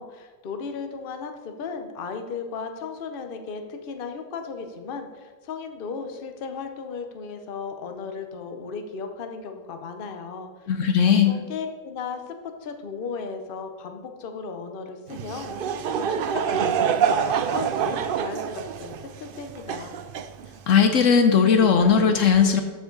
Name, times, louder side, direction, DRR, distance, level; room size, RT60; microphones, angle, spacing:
voice 1, 0.0-10.7 11.0-20.0, left 5 dB, 45° left, 6 dB, 0.9 m, -36 dB
voice 2, 10.7-11.4 20.7-22.6, left 6 dB, 65° left, 6 dB, 1.0 m, -18 dB
Laughter / Crowd, 15.1-20.8, right 7 dB, 80° right, 0.5 m, -26 dB
13.5 x 4.9 x 3.9 m, 1.5 s
omnidirectional pair, 1.5 m